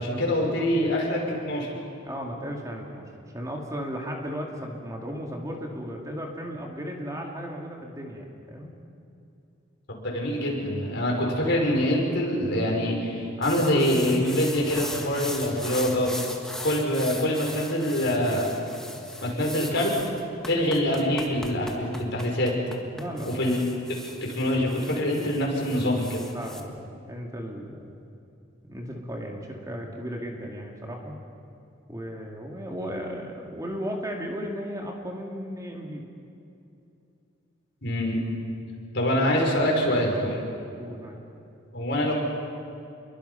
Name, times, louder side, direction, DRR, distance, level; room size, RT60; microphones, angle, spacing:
voice 1, 0.0-1.7 9.9-16.1 16.6-18.5 19.2-19.9 20.5-22.5 23.2-23.6 23.9-26.2 37.8-38.2 38.9-40.4 41.7-42.1, left 1 dB, 60° left, -1 dB, 5.6 m, -25 dB
voice 2, 2.0-3.1 3.3-8.7 22.9-23.4 26.3-27.9 28.6-31.2 31.9-36.0 40.8-41.2, equal, 15° right, 0 dB, 2.3 m, -35 dB
sound 1, 13.4-26.6, left 1 dB, 5° left, 1.6 m, -39 dB
28.0 x 23.0 x 5.7 m, 2.7 s
head